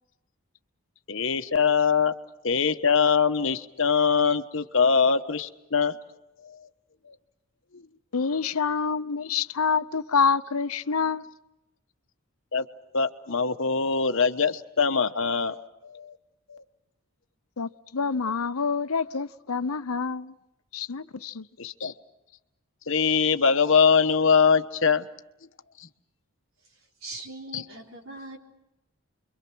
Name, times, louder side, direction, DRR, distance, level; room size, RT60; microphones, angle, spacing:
voice 1, 1.1-2.1 2.4-6.0 6.4-6.6 7.7-7.8 12.5-12.6 12.9-16.2 16.5-16.6 21.6-21.9 22.9-25.1 25.8-25.9 27.5-27.6, left 5 dB, 60° left, 1.1 m, -23 dB
voice 2, 8.1-11.3 17.6-20.3 20.7-21.4, left 5 dB, 85° left, 0.8 m, -27 dB
voice 3, 26.7-28.4, right 2 dB, 65° right, 3.9 m, -41 dB
30.0 x 23.0 x 6.2 m
head